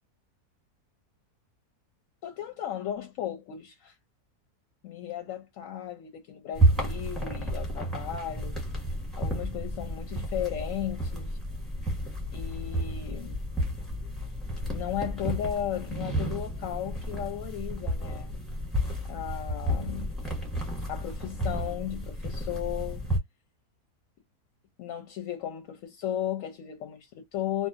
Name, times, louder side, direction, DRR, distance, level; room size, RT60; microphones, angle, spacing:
voice 1, 2.2-4.0 4.8-8.5 9.2-11.4 12.3-13.4 14.7-18.3 19.0-20.2 20.9-23.0 24.8-27.7, left 11 dB, 70° left, 0.9 m, -35 dB
sound 1, 6.5-23.2, right 1 dB, ahead, 1.1 m, -31 dB
2.6 x 2.2 x 2.4 m
omnidirectional pair, 1.6 m